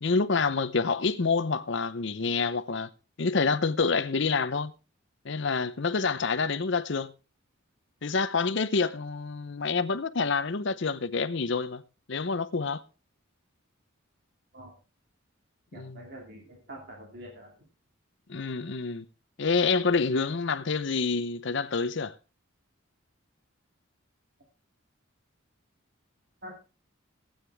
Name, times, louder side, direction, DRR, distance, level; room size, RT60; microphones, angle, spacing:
voice 1, 0.0-2.9 3.2-4.7 5.2-7.1 8.0-11.8 12.1-12.8 15.7-16.1 18.3-19.1 19.4-22.1, left 4 dB, 60° left, 0.7 m, -27 dB
voice 2, 15.7-17.5 26.4-26.6, equal, 50° right, 2.6 m, -45 dB
16.0 x 8.9 x 3.4 m
head